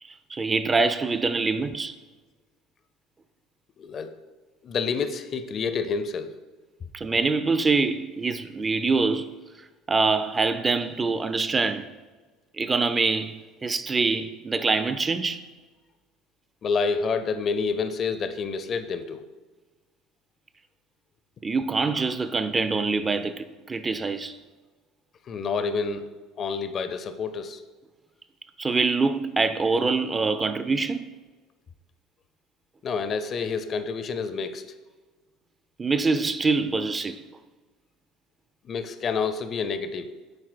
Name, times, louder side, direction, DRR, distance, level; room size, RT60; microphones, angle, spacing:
voice 1, 0.3-2.0 6.9-9.3 9.9-11.9 12.6-15.4 21.4-24.4 28.6-31.1 35.8-37.2, right 4 dB, 25° right, 0.4 m, -25 dB
voice 2, 3.8-4.2 4.6-6.3 16.6-19.2 25.3-26.1 26.4-27.6 32.8-34.6 38.6-40.1, left 5 dB, 40° left, 0.4 m, -28 dB
9.6 x 4.3 x 2.5 m
figure-of-eight pair, 65°, 0 cm